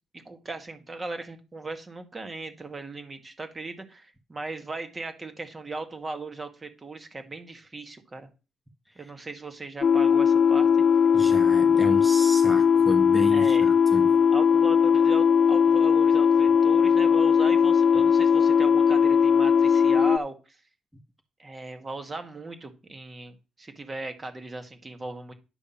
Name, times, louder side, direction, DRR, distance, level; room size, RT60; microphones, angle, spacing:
voice 1, 0.1-8.3 9.0-10.7 13.3-13.7 14.3-20.6 21.4-25.3, right 3 dB, 25° right, 7 dB, 1.8 m, -38 dB
sound 1, 9.8-20.2, left 7 dB, 50° left, 0.4 m, -19 dB
voice 2, 11.1-14.1, equal, 5° right, 4 dB, 1.4 m, -32 dB
10.5 x 3.5 x 7.1 m, 0.31 s
cardioid pair, 90°, 0 cm